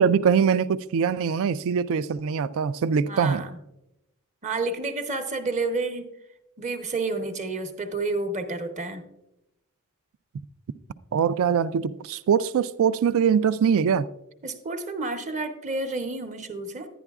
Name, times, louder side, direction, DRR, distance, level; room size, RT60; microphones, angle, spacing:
voice 1, 0.0-3.4 11.1-14.1, right 7 dB, 65° right, 0.3 m, -22 dB
voice 2, 3.0-3.5 4.4-6.1 6.6-9.0 14.4-16.9, right 3 dB, 35° right, 0.8 m, -30 dB
11.0 x 10.0 x 2.4 m
head